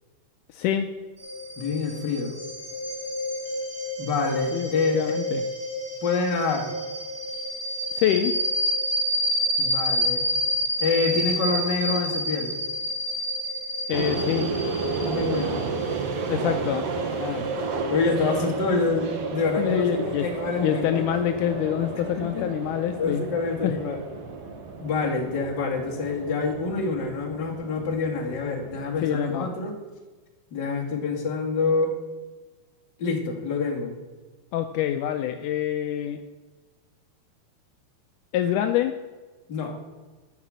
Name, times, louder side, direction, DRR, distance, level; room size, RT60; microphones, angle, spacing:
voice 1, 0.5-0.9 4.5-5.4 7.9-8.4 13.9-14.5 16.3-16.9 19.6-20.3 20.6-23.2 23.6-23.7 29.0-29.6 34.5-36.2 38.3-39.0, left 10 dB, 85° left, 7 dB, 1.8 m, -26 dB
sound 1, 1.2-17.5, equal, 15° right, 2.4 m, -29 dB
voice 2, 1.6-2.3 4.0-5.0 6.0-6.7 9.6-10.2 10.8-12.6 15.0-15.6 17.1-17.5 17.9-21.0 22.1-22.5 23.0-24.0 24.8-29.8 30.5-32.0 33.0-33.9 39.5-39.7, left 4 dB, 40° left, 0 dB, 1.9 m, -27 dB
sound 2, 13.9-29.1, right 4 dB, 55° right, 1.7 m, -32 dB
14.0 x 5.9 x 7.4 m, 1.3 s
omnidirectional pair, 4.3 m